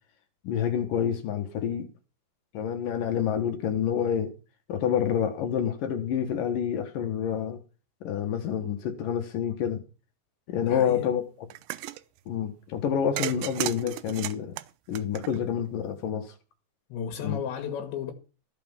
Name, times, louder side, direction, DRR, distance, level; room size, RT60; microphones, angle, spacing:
voice 1, 0.4-1.9 2.5-4.3 4.7-7.6 8.0-9.8 10.5-11.2 12.3-14.5 14.9-16.3 17.2-17.4, left 8 dB, 60° left, 2.7 m, -28 dB
voice 2, 10.6-11.1 15.3-15.5 16.9-18.1, left 7 dB, 90° left, 3.9 m, -34 dB
sound 1, 11.5-12.0 13.2-15.7, right 16 dB, 90° right, 3.0 m, -34 dB
15.0 x 6.0 x 7.3 m
omnidirectional pair, 5.0 m